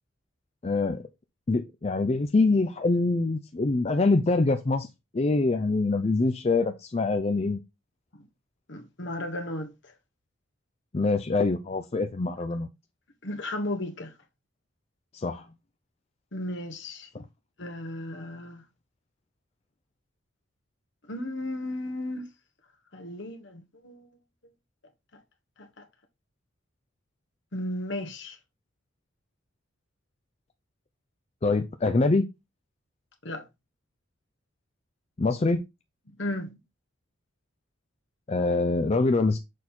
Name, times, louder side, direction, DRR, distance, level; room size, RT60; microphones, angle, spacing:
voice 1, 0.6-1.0 1.5-4.9 5.1-7.6 10.9-12.7 15.1-15.5 17.1-17.2 31.4-32.3 35.2-35.6 38.3-39.4, left 3 dB, 30° left, 0.4 m, -24 dB
voice 2, 8.7-9.7 13.2-14.1 16.3-17.1 17.6-18.6 21.1-22.3 22.9-24.1 25.6-25.9 27.5-28.4 33.2-33.4 36.2-36.6, left 1 dB, 60° left, 1.3 m, -34 dB
6.4 x 4.1 x 4.3 m
head